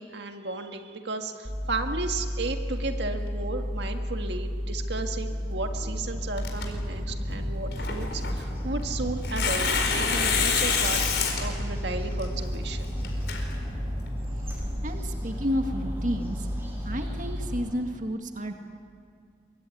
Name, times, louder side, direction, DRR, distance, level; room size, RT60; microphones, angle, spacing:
voice 1, 0.0-11.0 11.4-12.9, right 3 dB, 80° right, 4 dB, 1.8 m, -34 dB
sound 1, 1.4-17.6, equal, 30° right, 2.0 m, -32 dB
Tearing, 6.4-14.1, left 5 dB, 75° left, 4.7 m, -30 dB
sound 2, 8.5-17.8, equal, 15° right, 6.4 m, -48 dB
voice 2, 14.8-16.5 16.8-18.5, equal, 50° right, 4 dB, 1.9 m, -31 dB
23.5 x 23.5 x 9.5 m, 2.1 s
head